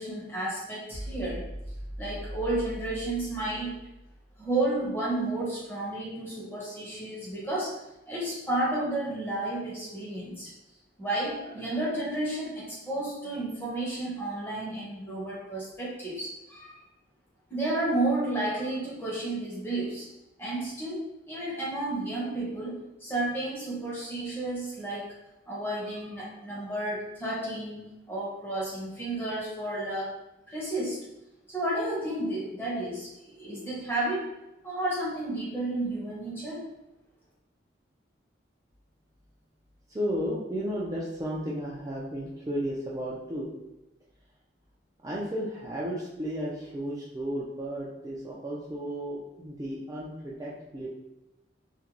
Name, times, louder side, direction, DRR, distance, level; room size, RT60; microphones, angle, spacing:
voice 1, 0.0-1.4 2.0-3.7 4.4-7.8 8.1-10.5 11.0-16.8 17.5-20.1 20.4-21.0 21.3-25.1 25.5-30.2 30.5-31.0 31.5-34.3 34.6-36.6, right 2 dB, 10° left, -6 dB, 0.7 m, -32 dB
sound 1, 0.9-4.3, equal, 70° left, 0.7 m, -40 dB
voice 2, 39.9-43.5 45.0-50.9, equal, 20° right, -7 dB, 0.3 m, -33 dB
2.4 x 2.2 x 2.9 m, 0.92 s
head